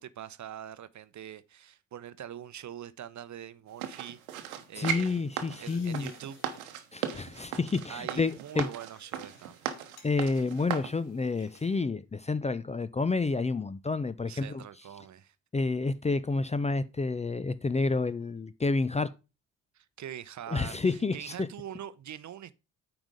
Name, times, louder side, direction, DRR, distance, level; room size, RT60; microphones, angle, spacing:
voice 1, 0.0-5.2 5.6-6.8 7.9-9.7 14.3-15.3 19.7-22.5, right 10 dB, 45° right, 0.8 m, -44 dB
sound 1, 3.6-5.1 5.5-6.6 6.9-7.2 7.9-11.7 12.0-12.2, left 5 dB, 65° left, 2.3 m, -60 dB
sound 2, 3.8-10.9 11.5-11.6, right 10 dB, 85° right, 1.0 m, -37 dB
voice 2, 4.8-6.1 6.9-8.7 10.0-14.6 15.5-19.1 20.5-21.5, left 3 dB, 15° left, 0.6 m, -29 dB
8.9 x 5.0 x 5.0 m
hypercardioid pair, 50°, 41 cm